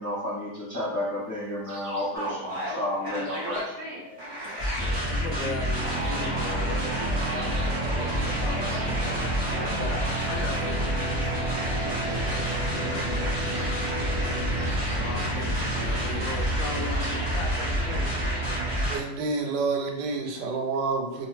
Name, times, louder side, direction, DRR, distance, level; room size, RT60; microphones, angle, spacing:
voice 1, 0.0-3.7, left 1 dB, 25° left, -9 dB, 0.3 m, -31 dB
sound 1, 1.6-2.2 3.2-3.8 4.6-5.1 6.0-6.5 7.2-7.8 8.6-9.1 9.9-10.4 12.2-12.7 13.4-14.1 14.6-15.1 15.8-16.2 16.9-17.4, right 2 dB, 60° right, 1.1 m, -45 dB
sound 2, 2.1-19.0, right 1 dB, 20° right, 0.8 m, -28 dB
voice 2, 4.4-11.6 12.3-13.7 14.6-18.2, left 4 dB, 75° left, 2 dB, 0.7 m, -39 dB
voice 3, 18.9-21.3, right 4 dB, 80° right, 2 dB, 1.2 m, -28 dB
3.0 x 2.1 x 3.1 m, 0.84 s
omnidirectional pair, 1.9 m